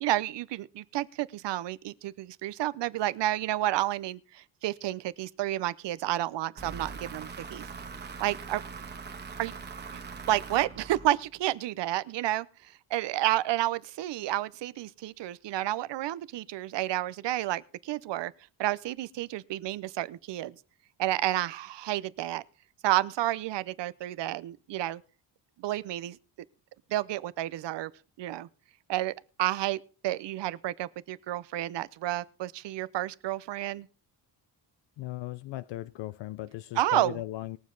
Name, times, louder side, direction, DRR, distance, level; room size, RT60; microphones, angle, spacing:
voice 1, 0.0-7.7 8.2-8.6 9.4-9.5 9.9-10.0 10.3-18.3 18.6-20.5 21.0-22.4 22.8-25.0 25.6-26.2 26.9-27.9 28.2-28.5 28.9-29.1 29.4-33.9 36.8-37.2, right 14 dB, 70° right, 0.7 m, -30 dB
sound 1, 6.6-11.5, right 5 dB, 25° right, 1.5 m, -42 dB
voice 2, 35.0-37.6, left 16 dB, 75° left, 0.6 m, -37 dB
21.0 x 7.3 x 3.9 m
cardioid pair, 170°, 44 cm